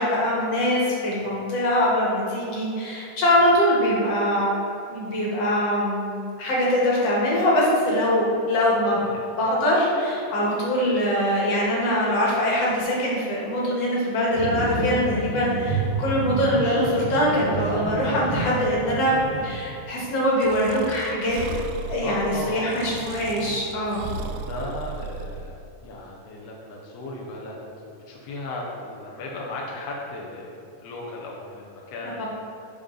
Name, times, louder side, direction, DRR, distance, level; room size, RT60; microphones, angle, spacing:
voice 1, 0.0-4.6 4.9-9.0 9.4-21.4 21.9-24.0 32.2-32.3, equal, 55° left, -4 dB, 2.3 m, -23 dB
voice 2, 8.9-9.3 15.9-16.1 19.9-20.1 22.0-22.8 24.4-27.6 28.1-32.3, left 2 dB, 75° left, -3 dB, 1.5 m, -36 dB
sound 1, 14.3-19.5, right 2 dB, 60° right, 1.0 m, -29 dB
Breathing, 20.4-25.5, right 4 dB, 80° right, 2.0 m, -35 dB
8.5 x 5.6 x 3.8 m, 2.6 s
omnidirectional pair, 3.9 m